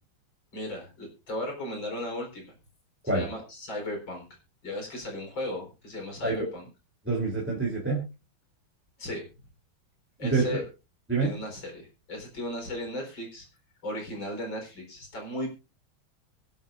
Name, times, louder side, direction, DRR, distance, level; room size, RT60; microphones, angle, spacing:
voice 1, 0.5-2.5 3.1-4.3 4.6-6.6 9.0-9.3 10.2-10.6 11.2-13.5 13.8-15.5, left 1 dB, 60° left, 2 dB, 4.8 m, -36 dB
voice 2, 7.0-8.0 10.2-10.6 11.1-11.3, right 3 dB, 5° right, -2 dB, 3.2 m, -26 dB
24.5 x 8.2 x 2.5 m, 0.29 s
omnidirectional pair, 2.3 m